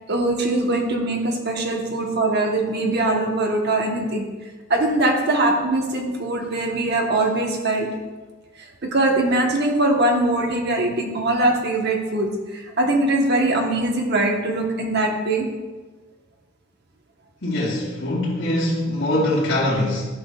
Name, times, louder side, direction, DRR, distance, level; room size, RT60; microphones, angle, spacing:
voice 1, 0.1-4.3 4.7-7.9 8.8-15.4, right 2 dB, 55° right, 1 dB, 1.1 m, -22 dB
voice 2, 17.4-20.0, left 1 dB, 85° left, -8 dB, 2.4 m, -22 dB
11.5 x 6.3 x 2.4 m, 1.3 s
head